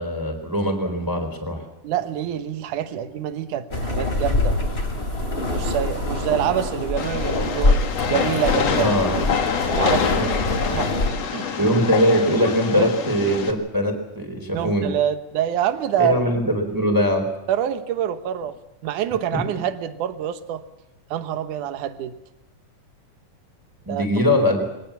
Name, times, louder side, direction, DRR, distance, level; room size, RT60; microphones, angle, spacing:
voice 1, 0.0-1.6 8.7-9.3 10.1-10.2 11.6-14.9 16.0-17.3 23.8-24.6, equal, 5° right, 2 dB, 3.9 m, -21 dB
voice 2, 1.8-4.6 5.5-9.1 9.7-11.5 12.8-12.9 14.5-16.1 17.5-18.5 18.8-20.6 21.1-22.1 23.9-24.1, right 10 dB, 80° right, 11 dB, 2.7 m, -26 dB
sound 1, 3.7-11.1, left 2 dB, 20° left, 3.1 m, -24 dB
Train, 7.0-13.5, left 6 dB, 60° left, 2.8 m, -26 dB
23.5 x 19.0 x 7.3 m, 0.91 s
omnidirectional pair, 3.6 m